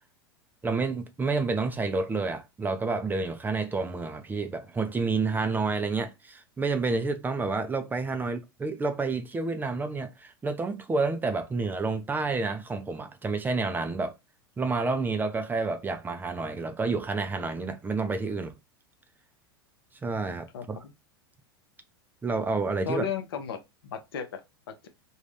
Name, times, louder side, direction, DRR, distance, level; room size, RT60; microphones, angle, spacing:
voice 1, 0.6-14.1 14.6-18.5 20.0-20.8 22.2-23.0, right 3 dB, 15° right, 0.4 m, -29 dB
voice 2, 20.5-20.9 22.8-24.4, left 7 dB, 70° left, 0.7 m, -34 dB
2.5 x 2.2 x 3.2 m
hypercardioid pair, 90°, 13 cm